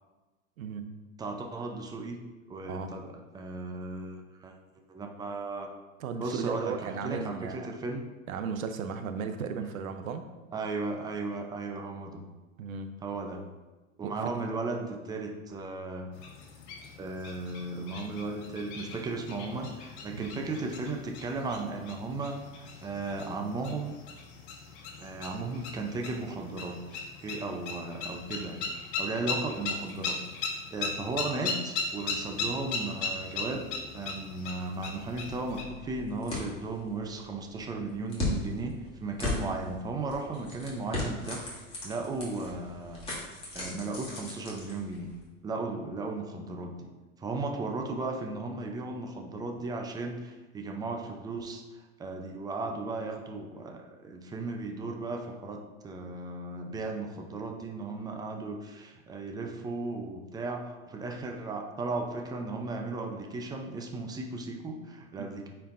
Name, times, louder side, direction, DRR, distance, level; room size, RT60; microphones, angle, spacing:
voice 1, 0.6-0.9 2.7-3.0 6.0-7.7 8.3-10.2 12.6-12.9 14.0-14.3 20.2-20.3 65.2-65.3, right 6 dB, 80° right, 8 dB, 0.8 m, -35 dB
voice 2, 1.2-2.2 2.5-4.5 4.9-5.7 6.2-8.0 9.6-9.7 10.5-12.2 13.0-13.4 14.0-16.1 17.0-23.9 25.0-28.6 29.0-33.6 33.9-38.7 39.0-41.4 41.8-43.0 43.5-45.1 45.4-46.9 47.2-51.6 52.0-65.5, right 3 dB, 10° right, 2 dB, 0.5 m, -36 dB
sound 1, 16.1-35.6, left 4 dB, 60° left, 1.5 m, -38 dB
sound 2, 34.9-45.2, left 2 dB, 15° left, 2.1 m, -38 dB
9.0 x 4.6 x 2.5 m, 1.2 s
hypercardioid pair, 120°, 41 cm